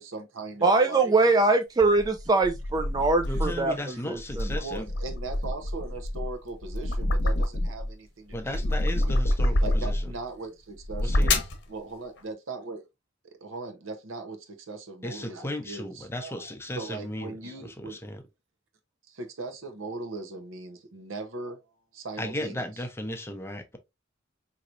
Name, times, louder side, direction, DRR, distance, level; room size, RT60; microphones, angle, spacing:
voice 1, 0.0-1.1 3.0-3.4 3.9-4.0 4.6-11.4 11.7-12.8 13.2-18.0 19.1-21.6 21.9-22.7, right 3 dB, 85° right, 0.9 m, -39 dB
voice 2, 0.6-4.5, right 3 dB, 20° right, 0.3 m, -23 dB
sound 1, 1.8-3.7 4.2-7.9 8.3-10.2 10.8-11.6, left 1 dB, 60° left, 0.9 m, -27 dB
voice 3, 3.3-4.9 8.3-10.0 11.0-11.4 15.0-17.3 17.8-18.2 22.2-23.8, left 1 dB, 15° left, 0.6 m, -35 dB
4.4 x 2.9 x 2.5 m
head